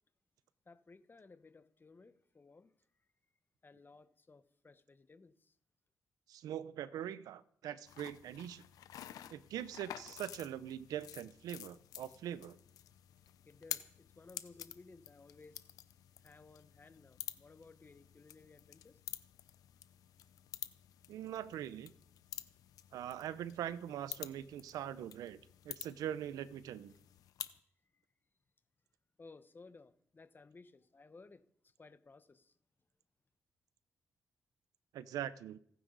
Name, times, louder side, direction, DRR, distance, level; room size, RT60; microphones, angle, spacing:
voice 1, 0.6-2.7 3.6-5.5 13.4-15.7 16.2-19.0 27.9-28.0 29.2-31.4 31.8-32.5, left 3 dB, 35° left, 1.2 m, -58 dB
voice 2, 6.3-8.6 9.3-12.6 21.1-21.9 22.9-26.9 34.9-35.6, right 10 dB, 90° right, 0.7 m, -42 dB
sound 1, 7.9-27.6, left 11 dB, 85° left, 0.7 m, -50 dB
28.0 x 9.5 x 4.1 m
cardioid pair, 60°, 6 cm